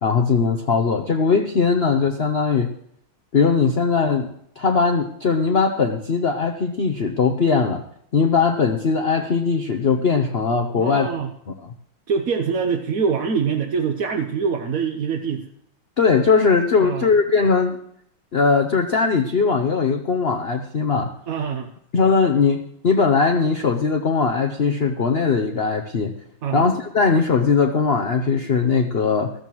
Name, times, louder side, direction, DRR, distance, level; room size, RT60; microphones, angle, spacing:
voice 1, 0.0-2.7 3.3-7.8 8.1-11.1 16.0-17.8 18.3-21.1 21.9-26.1 26.5-29.3, left 5 dB, 65° left, 4 dB, 0.6 m, -20 dB
voice 2, 10.8-11.3 12.1-15.5 16.8-17.1 21.3-21.7 26.4-26.7, right 6 dB, 60° right, 4 dB, 1.0 m, -24 dB
14.5 x 14.0 x 3.1 m, 0.69 s
omnidirectional pair, 2.3 m